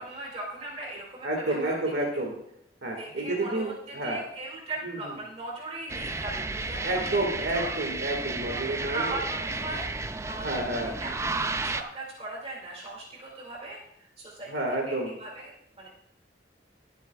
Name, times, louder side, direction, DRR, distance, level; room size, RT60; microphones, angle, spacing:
voice 1, 0.0-1.8 2.1-2.2 3.0-7.1 7.5-7.7 8.5-9.9 10.3-14.5 14.9-15.9, right 2 dB, 35° right, -3 dB, 2.3 m, -39 dB
voice 2, 1.2-2.4 2.8-4.2 4.8-5.1 6.8-9.1 10.4-11.0 14.5-15.1, right 1 dB, 75° right, 0 dB, 2.0 m, -30 dB
sound 1, 5.9-11.8, right 3 dB, 15° right, 0.4 m, -33 dB
24.5 x 8.2 x 2.4 m, 0.76 s
head